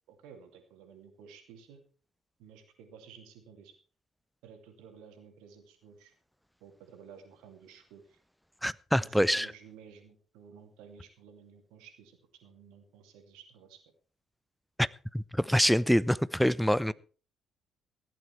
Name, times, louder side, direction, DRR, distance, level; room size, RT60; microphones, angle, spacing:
voice 1, 0.1-1.8 2.4-3.7 4.4-6.1 6.6-8.2 8.9-13.8, right 7 dB, 70° right, 2.5 m, -53 dB
voice 2, 8.6-9.5 14.8-14.9 15.1-16.9, equal, ahead, 0.6 m, -25 dB
15.0 x 11.5 x 4.5 m
figure-of-eight pair, 45°, 0 cm